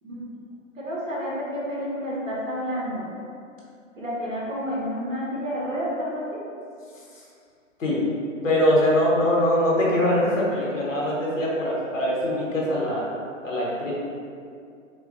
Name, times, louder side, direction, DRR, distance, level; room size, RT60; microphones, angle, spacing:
voice 1, 0.8-3.1 4.0-6.2, equal, 80° right, -6 dB, 1.1 m, -30 dB
voice 2, 8.4-13.1 13.4-13.9, left 1 dB, 85° left, -5 dB, 0.9 m, -22 dB
3.5 x 2.2 x 2.6 m, 2.4 s
figure-of-eight pair, 115°, 38 cm